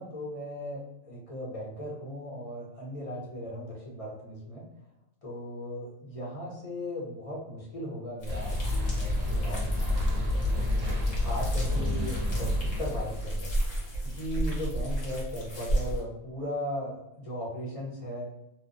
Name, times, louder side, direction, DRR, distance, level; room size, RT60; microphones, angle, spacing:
voice 1, 0.0-4.6 5.2-10.8 11.2-13.5 14.0-18.3, left 1 dB, 35° left, -5 dB, 0.7 m, -37 dB
sound 1, 8.2-16.0, right 1 dB, 75° left, 1.3 m, -34 dB
sound 2, 8.3-13.4, left 1 dB, 50° right, 0.4 m, -29 dB
2.8 x 2.1 x 2.5 m, 0.85 s
omnidirectional pair, 1.5 m